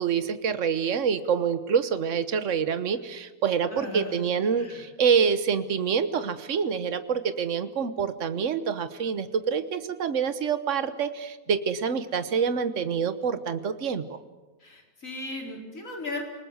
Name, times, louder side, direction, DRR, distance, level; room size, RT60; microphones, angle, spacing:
voice 1, 0.0-14.2, right 6 dB, 60° right, 10 dB, 1.5 m, -26 dB
voice 2, 3.7-4.2 4.6-4.8 14.6-16.2, left 2 dB, 65° left, 0 dB, 5.0 m, -36 dB
29.0 x 19.5 x 8.1 m, 1.2 s
omnidirectional pair, 1.5 m